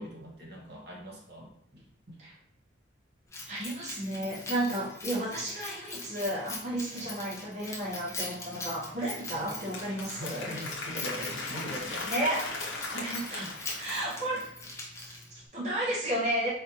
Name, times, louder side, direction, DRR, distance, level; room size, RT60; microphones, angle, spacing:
voice 1, 0.0-2.2 6.9-7.1 10.1-12.1, equal, 55° right, -3 dB, 1.0 m, -42 dB
Keys jangling, 3.3-15.4, left 2 dB, 15° left, 0.5 m, -42 dB
voice 2, 3.5-10.5 12.1-12.4 12.9-14.5 14.9-16.5, right 1 dB, 35° right, -8 dB, 1.2 m, -33 dB
Applause, 8.7-14.5, left 3 dB, 65° left, 0.8 m, -39 dB
4.2 x 2.5 x 2.8 m, 0.72 s
head